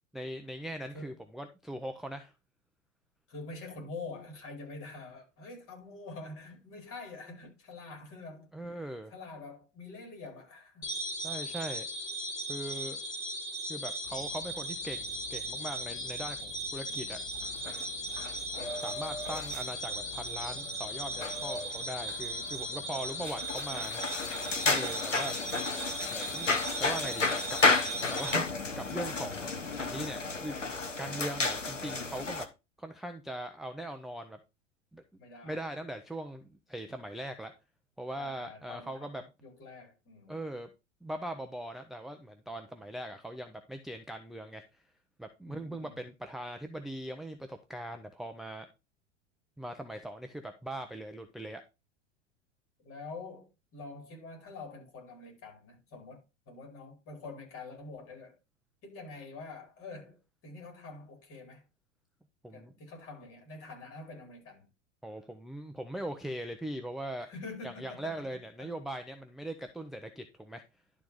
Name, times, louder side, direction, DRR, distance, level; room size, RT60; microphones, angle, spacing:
voice 1, 0.1-2.3 8.5-9.1 11.2-11.9 12.5-13.0 13.7-17.2 17.6-17.7 18.8-24.0 24.6-25.3 26.1-26.5 26.8-27.6 28.1-30.6 31.0-32.5 32.8-34.4 34.9-35.0 35.4-37.5 38.0-39.2 40.3-40.7 41.0-44.8 45.2-48.7 49.6-51.6 62.4-62.7 65.0-67.3 67.6-70.6, right 1 dB, ahead, 0.6 m, -40 dB
voice 2, 3.3-8.5 8.8-10.9 18.1-18.4 22.9-23.1 30.2-30.7 31.8-32.1 35.2-35.6 38.1-40.4 45.5-46.0 52.8-58.3 58.8-61.6 62.5-64.7 67.2-68.3 68.6-68.7, left 3 dB, 35° left, 4.8 m, -46 dB
sound 1, 10.8-28.3, equal, 70° left, 2.5 m, -37 dB
sound 2, 14.1-32.5, left 3 dB, 85° left, 1.2 m, -34 dB
11.5 x 4.0 x 4.8 m
figure-of-eight pair, 90°, 36 cm